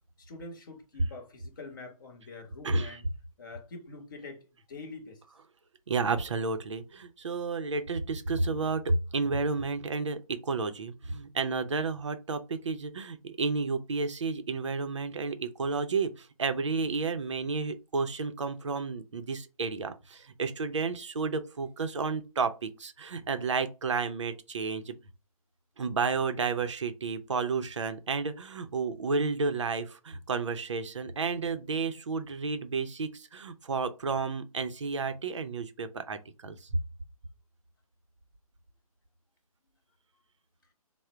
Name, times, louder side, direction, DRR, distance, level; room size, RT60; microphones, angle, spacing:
voice 1, 0.2-3.1 3.4-5.2, left 3 dB, 35° left, 0.9 m, -45 dB
voice 2, 2.6-3.0 5.9-24.9 25.8-36.7, right 4 dB, 50° right, 0.6 m, -31 dB
3.7 x 2.1 x 4.3 m
figure-of-eight pair, 155°, 19 cm